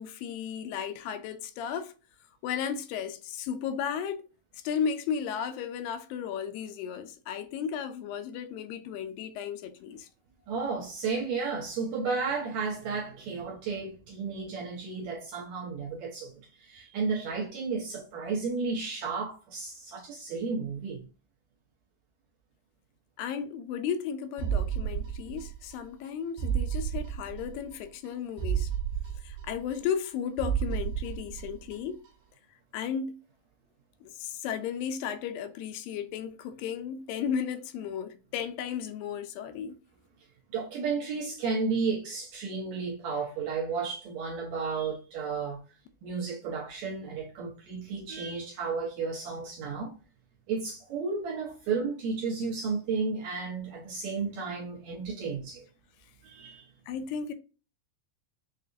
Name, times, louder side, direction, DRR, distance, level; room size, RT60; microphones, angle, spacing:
voice 1, 0.0-1.9 2.4-4.2 4.5-10.1 23.2-28.7 29.2-32.0 32.7-33.2 34.0-39.8 56.9-57.3, left 7 dB, 85° left, 2.3 m, -34 dB
voice 2, 10.5-21.1 40.5-45.6 46.0-49.9 50.5-55.6 56.2-56.6, right 4 dB, 75° right, 1.8 m, -33 dB
sound 1, 24.4-25.8 26.1-26.2 26.4-27.8 28.1-28.2 28.4-30.1 30.4-31.8 32.1-32.2, right 9 dB, 90° right, 2.5 m, -32 dB
6.6 x 2.4 x 2.5 m
omnidirectional pair, 4.0 m